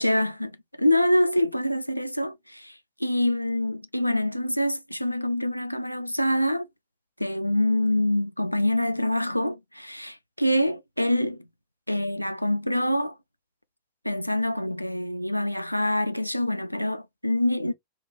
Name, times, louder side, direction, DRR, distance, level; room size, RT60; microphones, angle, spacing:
voice 1, 0.0-6.7 7.2-11.5 11.9-13.2 14.0-17.7, left 1 dB, 90° left, 0.3 m, -25 dB
3.4 x 3.0 x 2.3 m
figure-of-eight pair, 90°, 0 cm